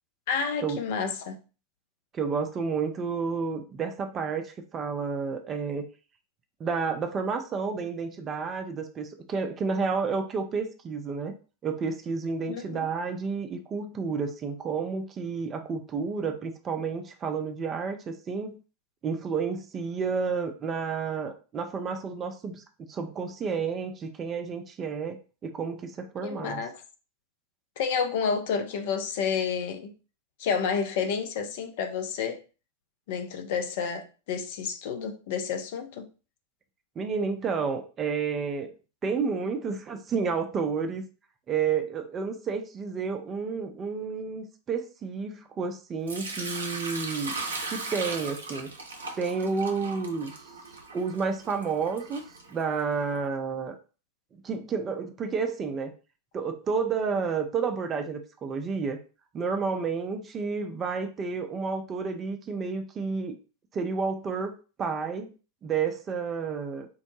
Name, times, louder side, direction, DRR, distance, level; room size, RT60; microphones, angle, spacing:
voice 1, 0.3-1.4 12.5-12.9 26.2-26.7 27.8-29.9 30.4-32.4 33.1-36.1, left 6 dB, 50° left, 0.5 m, -30 dB
voice 2, 2.1-5.8 6.6-11.3 11.6-18.6 19.0-22.6 22.9-25.2 25.4-26.6 37.0-38.7 39.0-41.0 41.5-47.4 47.7-48.7 49.2-50.3 50.9-52.2 52.5-53.7 54.3-55.9 56.3-59.0 59.3-63.4 63.7-65.3 65.6-66.9, right 5 dB, 25° right, 0.5 m, -30 dB
Sink (filling or washing) / Liquid, 46.1-53.0, right 3 dB, 70° right, 0.6 m, -38 dB
3.6 x 2.1 x 3.0 m
figure-of-eight pair, 90°, 0 cm